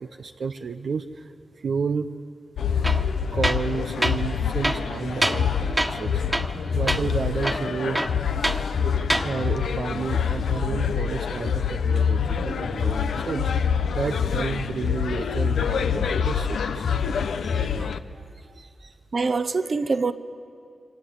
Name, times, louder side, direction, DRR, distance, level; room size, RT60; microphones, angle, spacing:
voice 1, 0.0-2.1 2.9-3.0 3.3-6.2 6.7-8.2 8.8-8.9 9.2-17.0 17.7-19.0, right 5 dB, 75° right, 0.8 m, -31 dB
sound 1, 2.6-18.0, left 6 dB, 90° left, 0.8 m, -26 dB
Tools, 2.8-3.1 3.4-3.7 4.0-4.2 4.6-5.5 5.8-6.0 6.3-6.6 6.9-7.0 7.4-8.6 9.0-9.3, right 1 dB, 15° right, 1.6 m, -25 dB
voice 2, 19.1-20.1, right 4 dB, 55° right, 1.1 m, -24 dB
27.5 x 25.0 x 8.2 m
cardioid pair, 55°, 0 cm